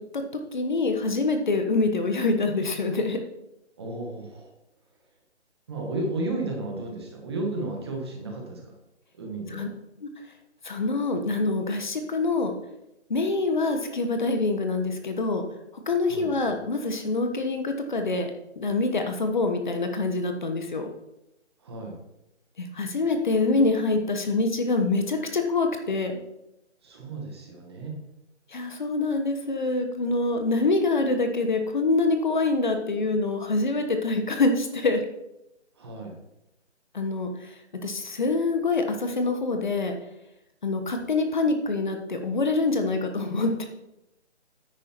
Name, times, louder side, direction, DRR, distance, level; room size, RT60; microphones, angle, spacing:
voice 1, 0.5-3.2 9.5-9.7 10.0-10.1 10.6-12.5 13.1-15.4 15.9-18.3 18.6-20.9 22.6-26.2 28.5-35.0 36.9-37.5 37.8-39.9 40.6-43.6, left 3 dB, 40° left, 5 dB, 1.3 m, -25 dB
voice 2, 3.8-4.5 5.7-8.7 9.2-9.7 16.1-16.3 21.6-21.9 26.8-28.0 35.8-36.2, right 2 dB, 20° right, 0 dB, 1.6 m, -33 dB
9.7 x 9.0 x 4.5 m, 0.87 s
hypercardioid pair, 170°, 35 cm